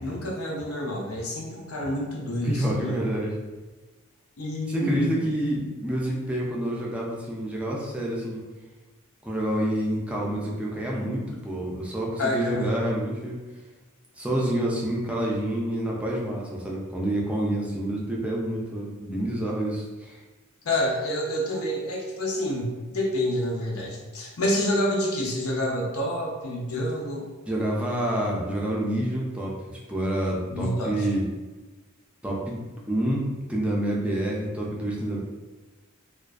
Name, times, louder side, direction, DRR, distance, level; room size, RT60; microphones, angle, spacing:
voice 1, 0.0-3.1 4.4-5.1 12.2-12.7 20.6-27.3 30.5-31.1, left 1 dB, 90° left, -2 dB, 0.6 m, -28 dB
voice 2, 2.4-3.3 4.7-8.4 9.2-13.4 14.2-20.2 27.5-29.5 29.9-31.2 32.2-35.2, right 1 dB, 5° right, -3 dB, 0.3 m, -28 dB
2.4 x 2.2 x 2.3 m, 1.3 s
head